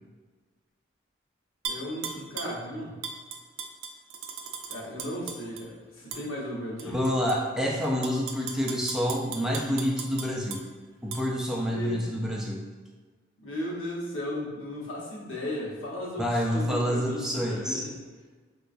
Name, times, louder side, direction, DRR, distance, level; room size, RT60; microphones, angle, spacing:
Tap / Glass, 1.6-2.6 3.0-5.6 6.1-6.2 6.8-7.4 7.8-10.6 11.1-11.2, right 6 dB, 80° right, 0.4 m, -37 dB
voice 1, 1.7-3.0 4.7-6.9 11.6-12.0 13.4-17.9, left 1 dB, 85° left, -4 dB, 0.8 m, -35 dB
voice 2, 6.9-10.6 11.0-12.6 16.2-17.8, equal, 5° right, -2 dB, 0.3 m, -28 dB
3.9 x 2.2 x 2.5 m, 1.4 s
head